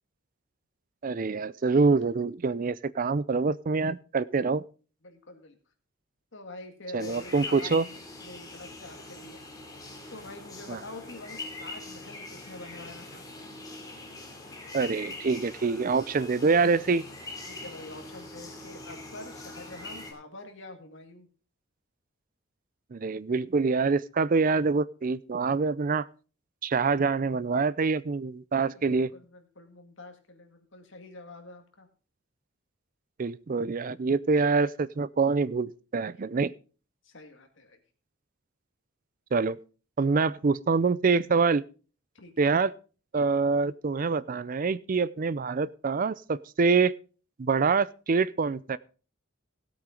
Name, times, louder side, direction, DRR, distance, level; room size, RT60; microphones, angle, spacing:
voice 1, 1.0-4.6 6.9-7.8 10.7-10.8 14.7-17.0 22.9-26.1 26.6-29.1 33.2-36.5 39.3-39.6 40.0-41.6 42.4-42.7 43.1-46.9 47.4-48.8, right 4 dB, 40° right, 18 dB, 0.4 m, -25 dB
voice 2, 5.0-5.6 6.3-9.4 10.1-13.2 17.4-21.3 28.7-31.9 36.3-36.4 37.0-37.8 42.1-42.6, left 2 dB, 60° left, 5 dB, 2.0 m, -46 dB
sound 1, 7.0-20.1, left 2 dB, 20° left, 2.7 m, -43 dB
17.0 x 8.3 x 3.8 m, 0.36 s
head